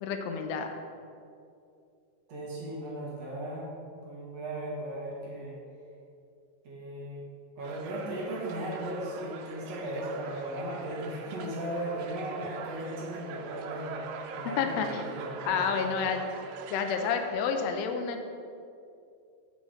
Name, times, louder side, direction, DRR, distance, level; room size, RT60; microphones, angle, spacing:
voice 1, 0.0-0.7 14.6-14.9 15.4-16.2 16.7-18.2, left 6 dB, 85° left, 5 dB, 1.4 m, -29 dB
voice 2, 2.3-5.5 6.6-7.2 7.6-16.0, right 1 dB, 55° right, -4 dB, 2.3 m, -37 dB
sound 1, 7.6-17.3, right 5 dB, 90° right, 2.5 m, -43 dB
9.2 x 7.2 x 5.0 m, 2.5 s
omnidirectional pair, 3.9 m